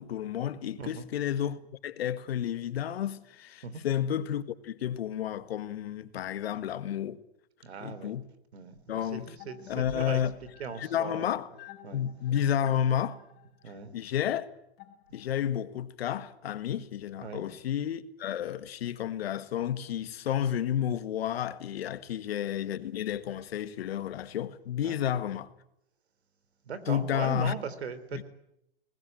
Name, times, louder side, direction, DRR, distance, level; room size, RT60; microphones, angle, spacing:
voice 1, 0.0-7.2 7.8-8.3 8.9-9.3 9.7-10.3 10.8-11.5 11.9-13.2 13.9-14.5 15.1-25.5 26.9-27.6 28.1-28.2, left 10 dB, 70° left, 1.8 m, -31 dB
voice 2, 7.6-8.1 8.5-10.2 10.6-11.3 11.8-12.0 13.6-13.9 17.2-17.5 24.8-25.0 26.7-28.2, right 5 dB, 85° right, 3.5 m, -39 dB
sound 1, 9.4-15.6, left 11 dB, 30° left, 4.4 m, -52 dB
23.0 x 20.0 x 9.3 m
hypercardioid pair, 130°, 31 cm